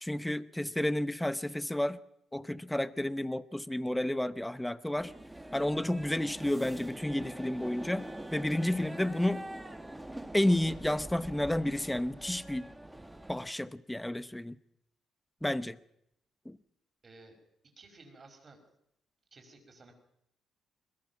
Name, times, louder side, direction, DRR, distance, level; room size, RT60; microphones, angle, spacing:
voice 1, 0.0-2.0 2.3-5.1 5.5-9.5 10.3-12.7 13.3-14.6 15.4-15.8 16.5-16.6, left 1 dB, 5° left, 15 dB, 0.9 m, -31 dB
sound 1, 5.0-13.5, right 1 dB, 10° right, 1.9 m, -44 dB
voice 2, 17.0-17.4 17.8-18.6 19.3-19.9, right 3 dB, 35° right, 5 dB, 5.3 m, -55 dB
21.5 x 21.0 x 6.0 m, 0.79 s
cardioid pair, 90°, 0 cm